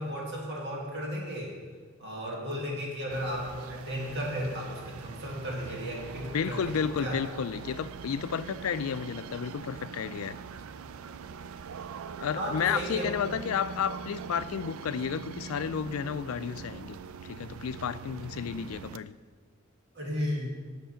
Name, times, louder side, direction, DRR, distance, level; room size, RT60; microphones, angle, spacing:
voice 1, 0.0-1.6 2.0-7.2 12.3-13.3 19.9-20.6, equal, 55° right, -3 dB, 2.1 m, -34 dB
sound 1, 3.1-19.0, right 6 dB, 80° right, 0.4 m, -43 dB
voice 2, 6.3-10.4 12.2-19.1, left 7 dB, 80° left, 14 dB, 0.4 m, -32 dB
9.2 x 7.3 x 5.7 m, 1.5 s
head